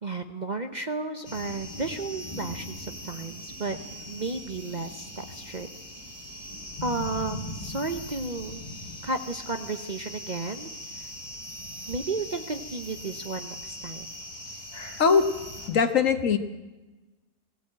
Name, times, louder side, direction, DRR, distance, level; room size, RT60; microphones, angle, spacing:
voice 1, 0.0-3.8 4.1-5.7 6.8-8.6 9.0-10.7 10.9-11.1 11.9-14.1, right 3 dB, 35° right, 7 dB, 0.9 m, -33 dB
sound 1, 1.2-15.7, left 1 dB, 25° left, 3.5 m, -40 dB
voice 2, 15.0-15.3 15.7-16.4, left 6 dB, 60° left, 8 dB, 1.6 m, -21 dB
20.0 x 16.0 x 8.9 m, 1.2 s
omnidirectional pair, 1.6 m